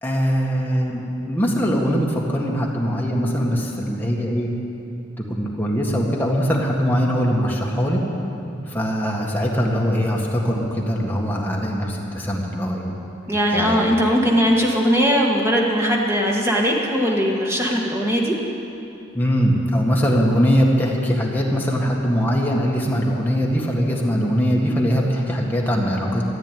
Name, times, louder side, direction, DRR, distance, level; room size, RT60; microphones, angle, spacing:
voice 1, 0.0-4.5 5.3-8.0 8.7-12.9 13.5-13.8 19.1-26.2, equal, 10° left, -2 dB, 1.8 m, -21 dB
voice 2, 13.3-18.3, equal, 15° right, -1 dB, 1.8 m, -19 dB
14.5 x 9.5 x 9.1 m, 2.8 s
head